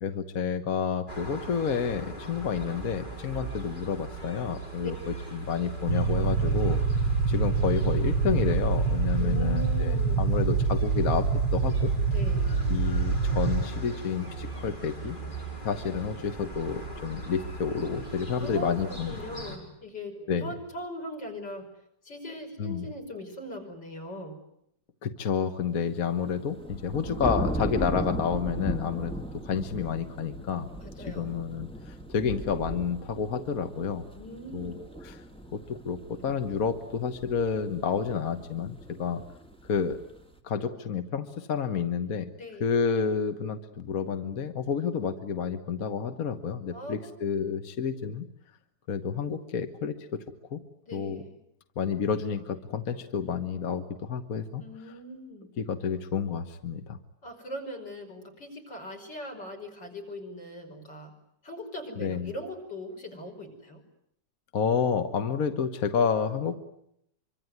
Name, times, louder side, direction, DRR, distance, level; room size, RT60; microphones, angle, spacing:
voice 1, 0.0-6.8 7.3-11.9 12.7-15.2 15.6-19.1 20.3-20.5 22.6-22.8 25.0-29.1 29.4-30.7 31.1-34.1 34.5-35.2 35.5-39.2 39.7-40.0 40.4-42.3 42.6-48.3 48.9-50.2 50.5-50.6 50.9-51.2 51.8-54.6 55.6-57.0 62.0-62.3 64.5-66.6, left 6 dB, 55° left, 8 dB, 1.7 m, -30 dB
sound 1, 1.1-19.6, right 2 dB, 25° left, 4.9 m, -40 dB
sound 2, 5.9-13.6, right 4 dB, 80° right, 2.1 m, -25 dB
voice 2, 9.2-10.3 12.1-12.6 18.4-21.7 22.0-24.4 30.8-31.3 34.1-34.8 42.4-42.7 46.7-47.3 50.9-51.4 54.6-55.5 57.2-61.1 61.4-63.8, left 1 dB, 90° left, 7 dB, 5.9 m, -40 dB
sound 3, 26.1-40.3, right 1 dB, 5° left, 2.1 m, -38 dB
25.0 x 24.5 x 9.5 m, 0.76 s
omnidirectional pair, 1.9 m